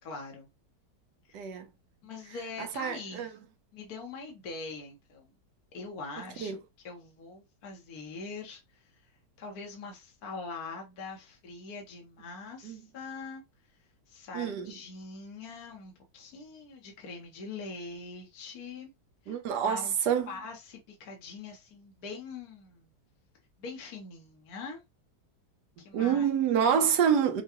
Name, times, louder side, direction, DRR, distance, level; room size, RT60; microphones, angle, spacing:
voice 1, 0.0-0.5 1.3-1.5 2.0-3.4 3.7-5.3 5.7-18.9 19.2-22.9 23.6-24.8 25.8-26.3, left 4 dB, 60° left, 1.4 m, -43 dB
voice 2, 1.3-1.6 2.6-3.3 6.4-6.6 12.6-12.8 14.3-14.7 19.3-20.3 25.9-27.4, right 8 dB, 70° right, 1.3 m, -27 dB
5.8 x 2.3 x 2.9 m
omnidirectional pair, 1.9 m